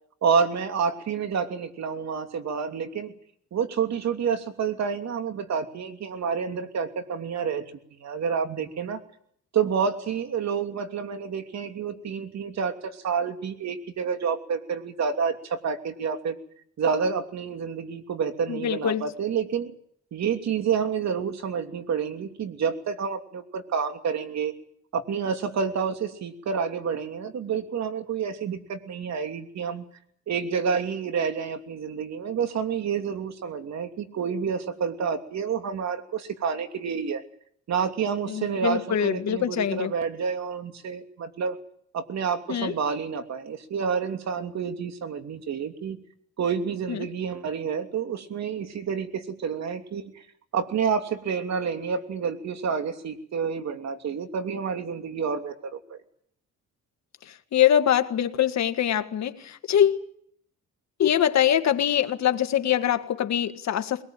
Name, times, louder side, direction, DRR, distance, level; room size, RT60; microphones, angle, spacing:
voice 1, 0.2-3.1 3.5-7.6 7.9-9.0 9.5-16.4 16.8-19.7 20.1-24.5 24.9-29.8 30.3-37.2 37.7-41.6 41.9-46.0 46.4-50.2 50.5-56.0, right 6 dB, 60° right, 7 dB, 3.0 m, -29 dB
voice 2, 18.5-19.0 38.3-39.9 42.5-42.7 46.9-47.0 57.5-60.0 61.0-64.0, left 10 dB, 65° left, 9 dB, 1.8 m, -23 dB
22.0 x 19.5 x 9.1 m, 0.66 s
cardioid pair, 90°, 30 cm